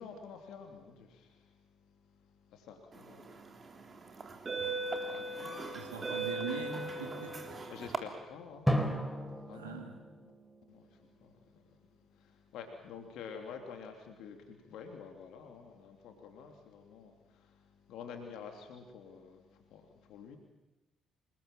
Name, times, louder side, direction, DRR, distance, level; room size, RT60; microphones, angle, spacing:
voice 1, 0.0-5.9 7.7-10.3 10.7-20.4, left 6 dB, 70° left, 3 dB, 3.1 m, -50 dB
sound 1, 3.2-3.4 4.2-8.0, right 2 dB, 40° right, 3.3 m, -37 dB
voice 2, 5.7-7.6 9.5-10.0, right 6 dB, 90° right, 3 dB, 3.2 m, -42 dB
Drum, 8.7-11.4, equal, ahead, 4.3 m, -35 dB
27.5 x 20.5 x 7.5 m, 1.0 s
hypercardioid pair, 45°, 0 cm